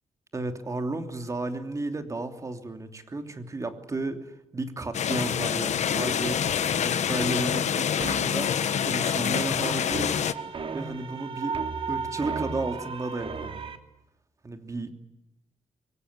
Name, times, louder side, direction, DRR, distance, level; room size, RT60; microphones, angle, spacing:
voice 1, 0.3-8.5 8.8-10.2 10.7-11.6 11.9-13.6 14.4-14.9, right 2 dB, 25° right, 6 dB, 3.0 m, -33 dB
sound 1, 4.9-10.3, left 8 dB, 75° left, 1.3 m, -26 dB
sound 2, 8.0-13.8, right 5 dB, 50° right, 2.6 m, -35 dB
24.5 x 24.0 x 9.7 m, 0.86 s
wide cardioid pair, 145°, 12 cm